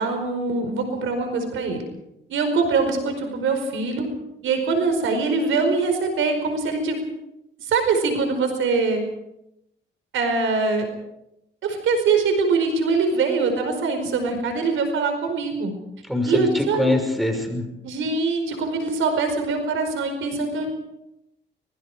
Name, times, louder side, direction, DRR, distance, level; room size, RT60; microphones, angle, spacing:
voice 1, 0.0-1.8 2.3-4.1 4.4-7.0 7.6-9.0 10.1-10.9 11.6-15.7 16.2-16.9 17.8-20.7, right 4 dB, 85° right, 6 dB, 5.0 m, -23 dB
voice 2, 16.1-17.6, left 1 dB, ahead, 5 dB, 6.0 m, -23 dB
24.5 x 22.5 x 5.0 m, 0.85 s
cardioid pair, 85°, 20 cm